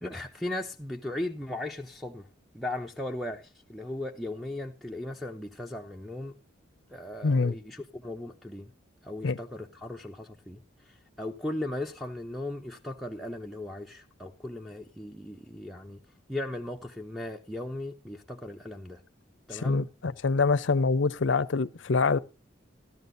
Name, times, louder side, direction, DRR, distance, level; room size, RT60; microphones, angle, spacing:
voice 1, 0.0-2.3 2.5-6.4 6.9-8.7 9.0-16.0 16.3-19.0 19.5-19.9, left 1 dB, ahead, 0.5 m, -37 dB
voice 2, 7.2-7.5 9.2-9.4 19.6-22.2, left 4 dB, 65° left, 0.5 m, -25 dB
14.0 x 12.5 x 2.6 m
head